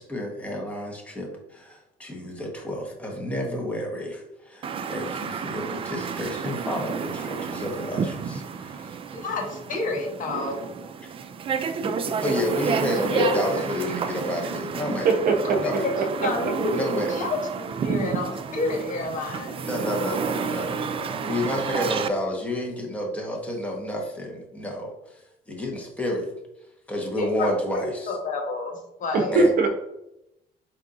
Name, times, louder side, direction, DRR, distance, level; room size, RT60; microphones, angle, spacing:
voice 1, 0.0-9.0 11.0-11.1 12.2-15.1 15.6-15.9 16.7-17.1 19.6-26.3 26.9-28.1 29.3-29.5, equal, 10° left, -1 dB, 1.2 m, -30 dB
sound 1, 4.6-22.1, right 6 dB, 35° right, 0.3 m, -31 dB
voice 2, 9.1-10.6 13.1-13.6 15.5-19.6 27.1-29.4, left 2 dB, 50° left, 2 dB, 1.1 m, -29 dB
voice 3, 11.8-12.1 15.0-16.3 29.1-29.7, right 3 dB, 55° right, 4 dB, 0.8 m, -23 dB
4.5 x 4.2 x 2.6 m, 0.86 s
cardioid pair, 110°, 17 cm